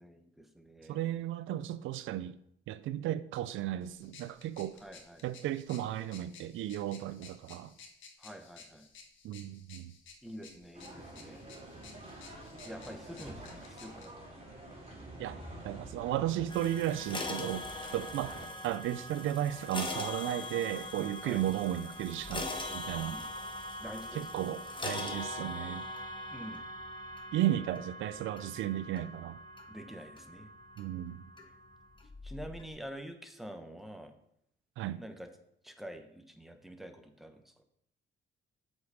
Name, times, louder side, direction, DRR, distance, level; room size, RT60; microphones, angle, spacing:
voice 1, 0.0-1.2 4.8-5.2 8.2-8.9 10.2-11.5 12.6-14.3 21.2-21.4 23.1-23.3 23.8-24.3 26.3-26.7 29.7-30.5 32.2-34.1 35.0-35.3 35.6-37.4, equal, ahead, 1.1 m, -47 dB
voice 2, 0.9-2.4 2.7-4.8 5.2-7.7 9.2-9.9 15.2-15.4 15.6-23.2 24.1-25.8 27.3-29.4 30.8-31.2 34.8-35.0, right 12 dB, 80° right, 0.4 m, -34 dB
sound 1, 3.8-14.1, left 5 dB, 75° left, 1.5 m, -56 dB
sound 2, 10.7-18.5, right 1 dB, 30° right, 3.2 m, -48 dB
sound 3, 16.5-32.7, left 2 dB, 25° left, 1.3 m, -42 dB
7.9 x 5.4 x 5.1 m
cardioid pair, 90°, 20 cm